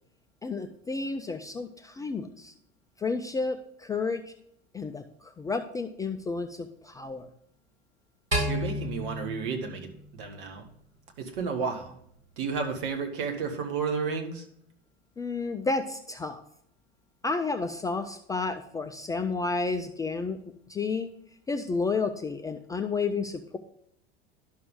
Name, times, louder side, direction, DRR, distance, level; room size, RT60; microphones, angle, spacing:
voice 1, 0.4-2.5 3.0-4.2 4.7-7.3 15.2-16.4 17.2-20.4 20.7-21.1 21.5-23.6, left 4 dB, 10° left, 6 dB, 0.4 m, -31 dB
sound 1, 8.3-10.7, equal, 90° right, 1.9 m, -32 dB
voice 2, 8.4-10.6 11.2-11.9 12.4-14.4, right 5 dB, 55° right, 4 dB, 1.7 m, -32 dB
11.5 x 5.9 x 3.7 m, 0.70 s
figure-of-eight pair, 80°, 32 cm